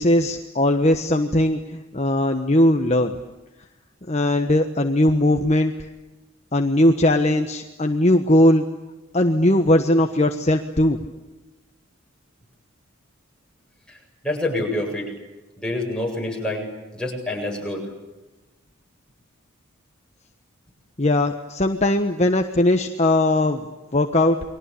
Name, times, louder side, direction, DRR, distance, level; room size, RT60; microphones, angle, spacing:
voice 1, 0.0-3.1 4.1-5.7 6.5-8.6 9.1-11.0 21.0-23.6 23.9-24.4, left 1 dB, 30° left, 5 dB, 1.3 m, -19 dB
voice 2, 14.2-15.1 15.6-16.7 16.9-17.9, left 1 dB, 5° left, -1 dB, 7.9 m, -27 dB
29.5 x 23.5 x 8.5 m, 1.1 s
head